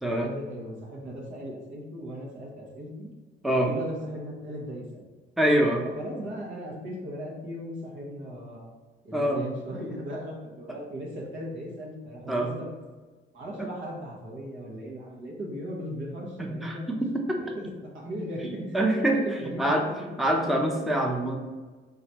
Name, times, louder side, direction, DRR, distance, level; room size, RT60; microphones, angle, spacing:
voice 1, 0.0-3.1 3.5-5.1 5.8-8.7 9.0-12.7 13.3-17.0 17.4-20.1, equal, 70° right, -2 dB, 1.4 m, -37 dB
voice 2, 5.4-5.8 9.1-9.4 12.3-12.5 13.6-13.7 16.4-17.4 18.4-19.2 19.6-19.9 20.2-21.4, right 1 dB, ahead, 0 dB, 0.7 m, -25 dB
4.0 x 4.0 x 3.0 m, 1.3 s
cardioid pair, 90°, 20 cm